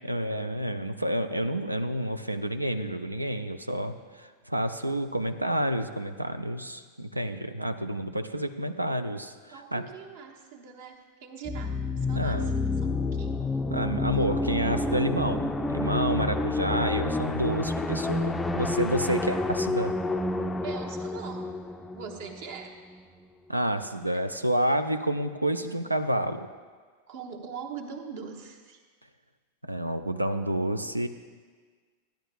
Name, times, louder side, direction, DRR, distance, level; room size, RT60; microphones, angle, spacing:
voice 1, 0.0-9.8 12.1-12.5 13.7-20.0 23.5-26.5 29.6-31.1, right 1 dB, 85° right, 10 dB, 0.4 m, -29 dB
voice 2, 9.5-13.5 20.6-21.5 21.9-22.8 24.1-24.2 25.8-25.9 27.1-28.8, right 6 dB, 55° right, 2 dB, 1.1 m, -42 dB
sound 1, 11.5-23.0, left 2 dB, 10° left, 0.4 m, -29 dB
14.5 x 10.0 x 2.4 m, 1.5 s
figure-of-eight pair, 90°, 0 cm